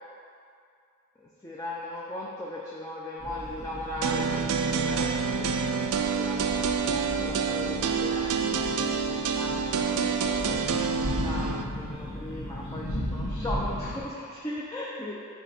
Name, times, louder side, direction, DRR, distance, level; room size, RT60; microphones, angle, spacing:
voice 1, 1.2-5.1 5.4-5.8 6.1-15.1, left 1 dB, 15° left, -5 dB, 0.5 m, -38 dB
sound 1, 3.2-14.0, equal, 55° left, 1.5 m, -36 dB
sound 2, 4.0-11.6, right 5 dB, 80° right, 0.4 m, -27 dB
7.3 x 4.1 x 4.3 m, 2.3 s
head